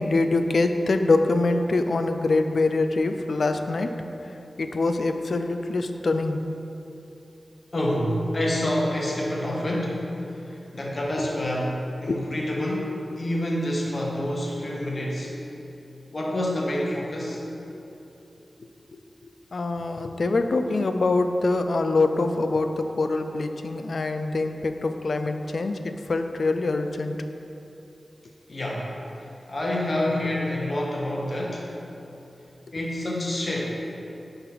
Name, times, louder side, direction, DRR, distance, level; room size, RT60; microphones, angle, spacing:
voice 1, 0.0-3.9 4.6-6.4 12.1-12.2 19.5-27.2, left 3 dB, 70° left, 7 dB, 0.3 m, -24 dB
voice 2, 7.7-15.4 16.1-17.5 28.5-28.9 29.5-31.8 32.7-33.7, left 1 dB, 50° left, -2 dB, 1.1 m, -27 dB
5.4 x 4.0 x 5.8 m, 2.9 s
wide cardioid pair, 65°, 0 cm